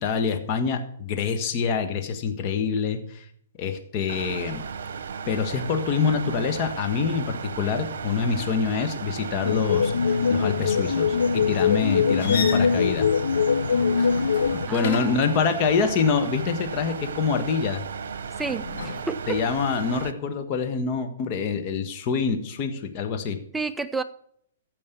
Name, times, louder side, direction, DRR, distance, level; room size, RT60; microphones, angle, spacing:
voice 1, 0.0-3.2 3.6-4.6 5.3-13.1 14.0-14.1 14.5-17.8 19.3-23.4, left 6 dB, 40° left, 6 dB, 1.5 m, -26 dB
sound 1, 4.1-20.1, right 6 dB, 65° right, 0.9 m, -35 dB
sound 2, 9.4-14.7, left 6 dB, 80° left, 0.5 m, -22 dB
sound 3, 12.2-15.4 18.4-19.0, left 5 dB, 60° left, 2.9 m, -35 dB
voice 2, 14.7-15.2 18.4-19.4 23.5-24.0, right 4 dB, 10° right, 11 dB, 0.5 m, -30 dB
14.0 x 5.4 x 6.9 m, 0.65 s
hypercardioid pair, 130°, 0 cm